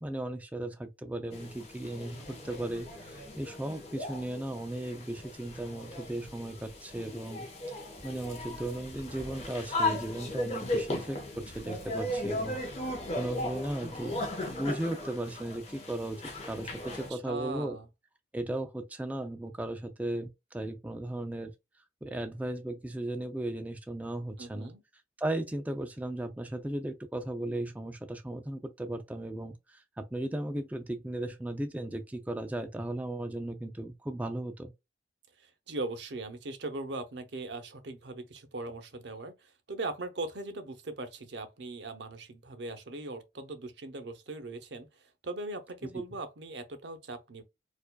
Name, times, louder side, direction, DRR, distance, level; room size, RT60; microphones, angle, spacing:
voice 1, 0.0-7.5 8.0-14.2 14.5-17.8 18.3-21.5 22.0-24.7 25.2-34.7, right 1 dB, 10° right, 0.3 m, -36 dB
sound 1, 1.3-17.1, left 1 dB, 35° left, 1.0 m, -37 dB
voice 2, 17.1-17.9 24.4-24.8 35.4-47.4, right 2 dB, 65° right, 0.7 m, -40 dB
4.5 x 2.5 x 2.2 m
head